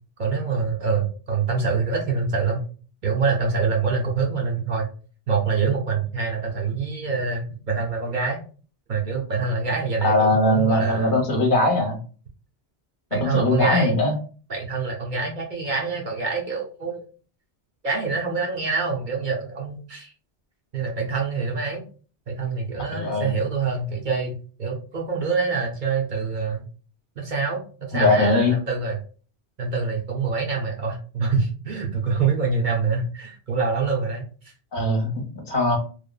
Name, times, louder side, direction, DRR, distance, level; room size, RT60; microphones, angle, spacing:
voice 1, 0.2-2.6 3.0-4.9 5.3-8.4 8.9-11.1 13.1-14.0 14.5-17.0 17.8-20.1 20.7-21.8 22.3-26.7 27.2-29.0 29.6-34.3, right 4 dB, 55° right, 0 dB, 0.7 m, -25 dB
voice 2, 10.0-12.0 13.1-14.2 22.9-23.3 27.9-28.6 34.7-35.8, left 2 dB, 55° left, 1 dB, 0.9 m, -21 dB
3.2 x 2.0 x 2.2 m, 0.39 s
omnidirectional pair, 1.1 m